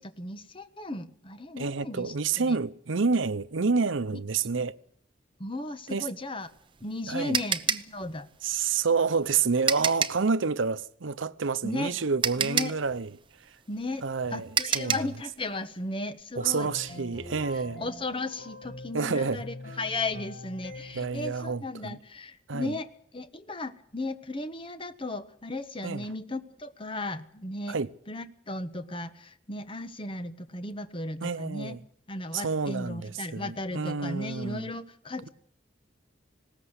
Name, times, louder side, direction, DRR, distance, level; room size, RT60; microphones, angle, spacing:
voice 1, 0.0-2.6 5.4-6.5 6.8-8.3 11.6-12.0 12.4-12.8 13.7-14.0 14.3-16.9 17.8-27.8 28.1-31.8 32.1-35.3, left 2 dB, 25° left, 1.2 m, -36 dB
voice 2, 1.6-4.7 5.9-6.1 7.1-7.4 8.4-13.1 14.0-14.5 14.7-14.9 16.4-17.8 18.9-19.4 20.9-22.0 22.5-22.7 25.8-26.0 27.7-27.9 31.2-31.8 32.3-34.7, right 5 dB, 85° right, 0.8 m, -28 dB
sound 1, 6.4-10.3 11.7-11.8 12.2-15.2, right 7 dB, 25° right, 0.8 m, -29 dB
sound 2, 16.4-19.0 19.4-21.2, left 1 dB, 45° left, 6.5 m, -43 dB
20.0 x 17.5 x 8.1 m
head